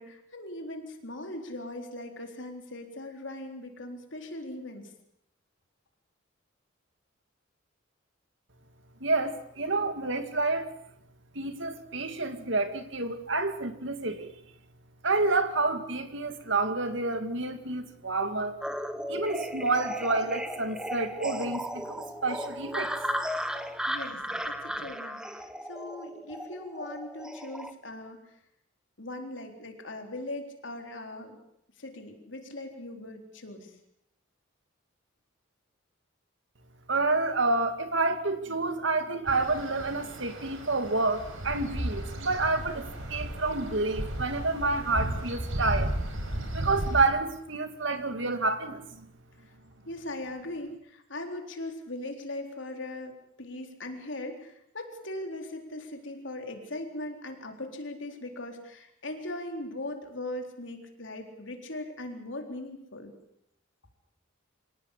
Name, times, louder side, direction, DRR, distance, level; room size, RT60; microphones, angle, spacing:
voice 1, 0.0-4.9 23.9-28.3 29.0-31.4 31.8-33.8 49.9-63.1, left 1 dB, 65° left, 4 dB, 4.0 m, -39 dB
voice 2, 9.0-10.7 11.3-14.3 15.0-18.6 19.1-23.0 36.9-45.9 46.5-49.1, right 3 dB, 65° right, 8 dB, 2.4 m, -29 dB
sound 1, 18.6-27.7, equal, 5° right, 1.3 m, -35 dB
sound 2, 39.3-47.1, right 1 dB, 90° right, 5.6 m, -34 dB
25.5 x 18.0 x 8.6 m, 0.75 s
head